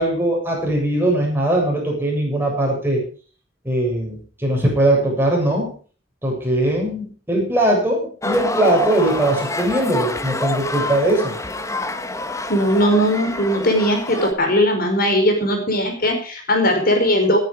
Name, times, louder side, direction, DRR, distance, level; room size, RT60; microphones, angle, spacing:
voice 1, 0.0-3.0 3.6-5.7 6.2-11.4, right 1 dB, 10° right, -1 dB, 7.2 m, -20 dB
sound 1, 8.2-14.3, left 2 dB, 15° left, 1.4 m, -27 dB
voice 2, 12.5-17.4, equal, 50° left, 4 dB, 4.7 m, -18 dB
19.5 x 10.5 x 4.9 m, 0.40 s
head